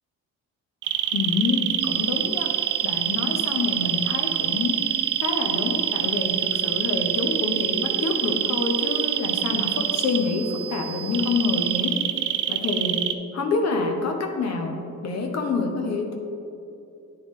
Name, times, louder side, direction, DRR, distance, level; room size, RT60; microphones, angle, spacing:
sound 1, 0.8-10.2 11.1-13.2, right 12 dB, 80° right, 0.5 m, -25 dB
voice 1, 1.1-2.5 2.8-4.8 5.2-11.9 12.5-14.8 15.0-16.2, left 3 dB, 60° left, 3 dB, 1.0 m, -27 dB
sound 2, 1.8-11.8, right 9 dB, 35° right, 0.7 m, -37 dB
9.9 x 3.8 x 3.7 m, 2.7 s
cardioid pair, 90°, 30 cm